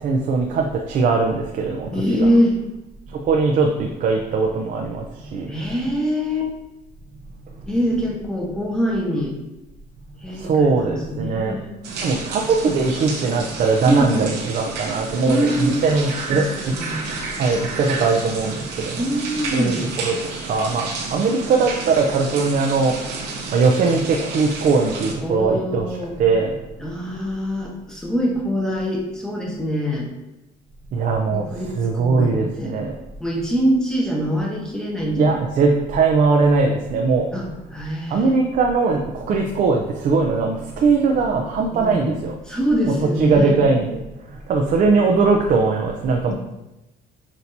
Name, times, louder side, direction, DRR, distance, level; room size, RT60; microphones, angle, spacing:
voice 1, 0.0-2.0 3.3-5.0 5.3-5.5 10.3-11.6 12.0-16.8 17.4-19.0 19.5-20.2 20.5-23.0 23.5-25.9 26.2-26.5 30.9-33.0 35.2-37.3 38.1-42.3 42.9-44.0 44.5-46.3, right 4 dB, 50° right, 1 dB, 0.5 m, -20 dB
voice 2, 1.9-2.6 5.5-6.5 7.7-9.3 10.2-11.8 13.9-14.3 15.3-15.8 16.3-16.5 16.7-17.0 19.0-19.9 25.2-26.1 26.8-30.1 31.3-32.8 33.2-35.4 37.3-38.3 41.7-42.1 42.5-43.5 46.3-46.4, equal, 5° left, -2 dB, 1.0 m, -24 dB
sound 1, 11.8-25.1, right 4 dB, 80° right, 0.9 m, -31 dB
5.9 x 2.7 x 2.7 m, 0.95 s
cardioid pair, 110°, 17 cm